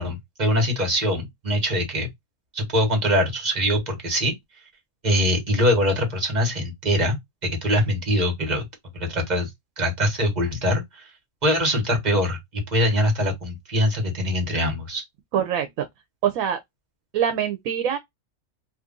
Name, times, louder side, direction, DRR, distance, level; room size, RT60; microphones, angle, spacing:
voice 1, 0.0-2.1 2.5-4.3 5.0-7.2 7.4-8.7 8.9-9.5 9.8-11.0 11.4-15.0, equal, 35° right, 1.2 m, -23 dB
voice 2, 15.3-15.8 16.2-16.6 17.1-18.0, right 9 dB, 75° right, 1.0 m, -24 dB
2.8 x 2.5 x 3.6 m
omnidirectional pair, 1.5 m